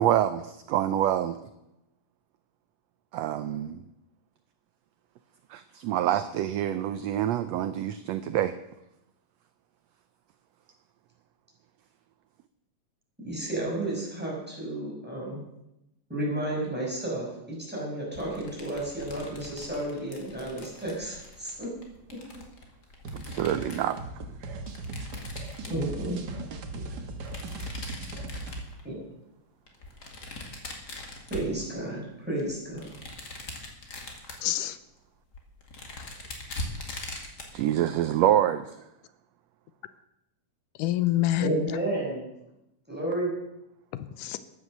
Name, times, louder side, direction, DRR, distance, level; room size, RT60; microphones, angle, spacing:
voice 1, 0.0-1.4 3.1-3.8 5.5-8.5 23.1-24.0 24.4-24.6 37.5-38.7, right 11 dB, 80° right, 1.5 m, -26 dB
voice 2, 13.2-15.4 16.1-21.7 22.1-22.2 25.6-26.2 28.8-29.0 31.3-33.0 41.4-42.2 42.9-43.3, right 1 dB, 5° right, 5.5 m, -32 dB
sound 1, 18.1-24.0 24.7-26.2 27.2-28.9 29.7-32.0 32.4-34.5 35.0-35.1 35.3-37.6, left 2 dB, 35° left, 2.3 m, -42 dB
sound 2, 23.0-28.7, right 2 dB, 55° right, 1.1 m, -38 dB
voice 3, 34.4-34.8 36.0-36.2 40.8-41.8 43.9-44.4, left 14 dB, 85° left, 2.2 m, -27 dB
14.5 x 9.9 x 6.6 m
omnidirectional pair, 3.6 m